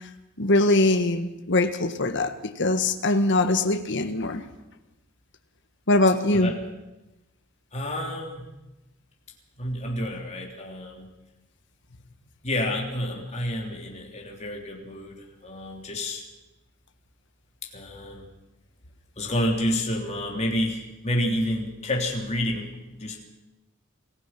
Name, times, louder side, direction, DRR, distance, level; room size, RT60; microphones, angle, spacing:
voice 1, 0.4-4.4 5.9-6.5, left 2 dB, 60° left, 7 dB, 1.5 m, -22 dB
voice 2, 7.7-8.5 9.6-11.1 12.4-16.2 17.7-18.3 19.2-22.7 23.0-23.2, left 1 dB, 30° left, 0 dB, 3.4 m, -29 dB
27.0 x 16.0 x 6.0 m, 1.0 s
head